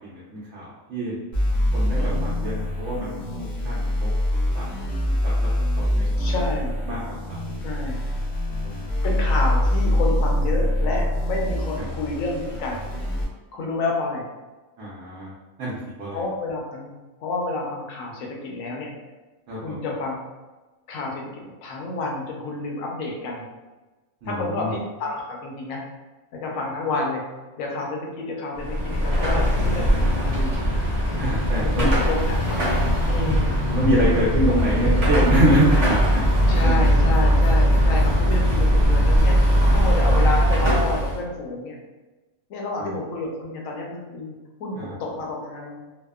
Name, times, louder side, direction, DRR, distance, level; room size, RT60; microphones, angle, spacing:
voice 1, 0.0-1.1 1.7-4.1 4.5-4.6 5.2-5.3 5.9-6.3 6.9-7.0 7.3-7.4 8.6-8.9 14.8-15.3 15.6-16.2 19.5-19.8 24.2-24.7 31.2-31.9 33.4-36.7 42.8-42.9 44.8-44.9, right 1 dB, 65° right, -7 dB, 0.9 m, -26 dB
sound 1, 1.3-13.2, left 1 dB, 50° left, 0.7 m, -24 dB
voice 2, 2.0-2.3 6.2-6.8 7.6-8.0 9.0-12.8 13.5-14.2 16.1-16.9 17.2-18.9 19.6-20.2 20.9-23.5 24.3-25.8 26.3-27.2 27.6-30.6 31.6-32.6 33.1-33.8 36.5-39.4 39.7-41.8 42.5-44.3 44.6-45.8, left 2 dB, 75° left, -1 dB, 1.0 m, -29 dB
Car passing by / Traffic noise roadway noise / Engine, 28.6-41.2, equal, 45° right, 0.5 m, -20 dB
2.7 x 2.1 x 2.2 m, 1.2 s
omnidirectional pair, 1.4 m